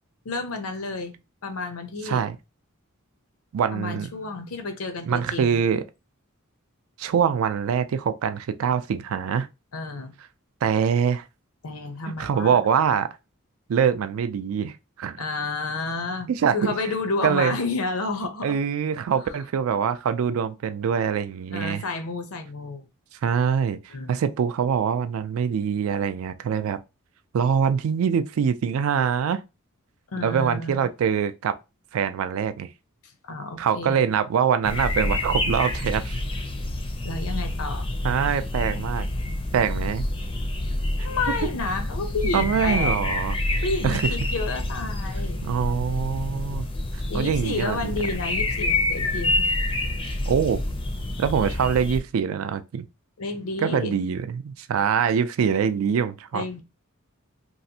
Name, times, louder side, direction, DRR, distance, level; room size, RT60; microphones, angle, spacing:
voice 1, 0.2-1.1 1.4-2.2 3.7-5.6 9.7-10.1 11.6-12.6 15.2-18.6 19.2-19.3 21.5-22.8 23.9-24.2 30.1-30.9 33.2-34.1 37.0-37.9 41.0-43.0 43.6-45.4 47.1-49.6 53.2-54.0 56.3-56.6, left 3 dB, 90° left, 0.7 m, -30 dB
voice 2, 2.0-2.4 3.5-4.1 5.1-5.8 7.0-9.5 10.6-11.3 12.2-13.2 13.7-15.2 16.3-16.7 17.2-17.6 18.4-21.8 23.1-26.8 27.3-29.4 30.2-31.6 31.9-32.7 33.6-36.2 38.0-39.1 39.5-40.1 42.3-43.4 43.8-44.0 45.4-46.7 46.9-48.0 50.3-50.6 51.2-52.9 53.6-56.5, right 7 dB, 70° right, 0.3 m, -24 dB
sound 1, 34.6-52.0, left 2 dB, 25° left, 0.4 m, -27 dB
3.1 x 2.4 x 2.7 m
head